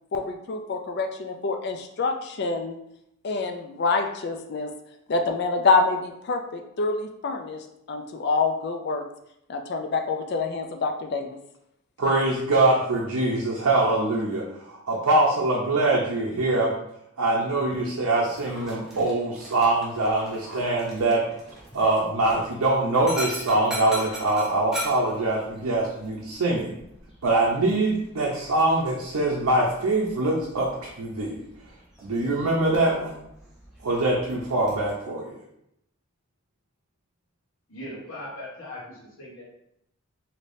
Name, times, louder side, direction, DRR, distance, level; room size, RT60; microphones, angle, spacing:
voice 1, 0.1-2.8 3.2-4.7 5.1-7.6 7.9-9.0 9.5-11.3, left 4 dB, 50° left, 0.3 m, -26 dB
voice 2, 12.0-16.7 17.2-26.7 27.2-31.4 32.0-33.2 33.8-35.4, right 2 dB, 90° right, 0.6 m, -23 dB
Dog, 18.3-34.9, equal, ahead, 0.6 m, -41 dB
voice 3, 37.7-39.4, left 1 dB, 65° left, 1.0 m, -39 dB
3.3 x 2.7 x 2.6 m
head